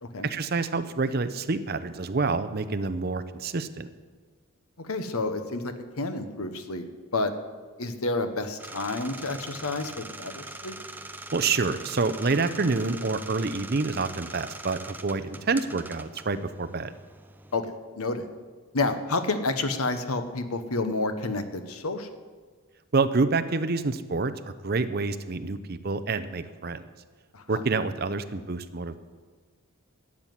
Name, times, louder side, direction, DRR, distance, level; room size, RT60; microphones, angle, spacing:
voice 1, 0.2-3.9 11.3-16.9 22.9-24.3 24.6-26.9 27.5-29.0, right 3 dB, 45° right, 12 dB, 0.6 m, -27 dB
voice 2, 4.8-6.9 7.1-7.3 7.8-10.8 15.3-15.4 17.5-18.3 18.7-22.1 27.3-27.6, left 3 dB, 80° left, 8 dB, 1.1 m, -30 dB
sound 1, 8.6-17.6, right 2 dB, 10° right, 0.4 m, -42 dB
12.5 x 7.4 x 9.4 m, 1.5 s
head